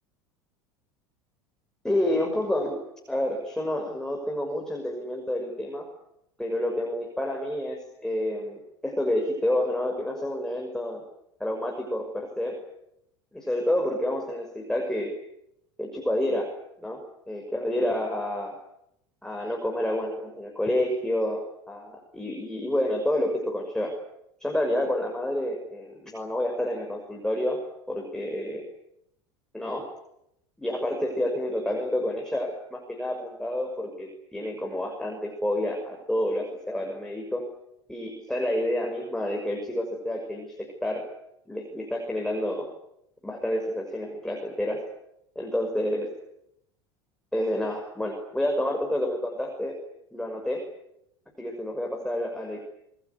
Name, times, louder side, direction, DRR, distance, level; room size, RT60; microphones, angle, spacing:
voice 1, 1.8-2.8 3.1-5.9 6.4-11.0 11.4-12.6 13.3-15.1 15.8-16.5 16.8-17.0 17.3-18.5 19.2-23.9 24.4-27.6 27.9-28.6 29.5-29.8 30.6-37.4 37.9-41.0 41.5-42.7 43.2-44.8 45.3-46.1 47.3-49.7 50.1-50.6 51.4-52.6, left 1 dB, 5° left, 1 dB, 6.1 m, -29 dB
26.5 x 20.0 x 9.7 m, 0.79 s
hypercardioid pair, 90°, 13 cm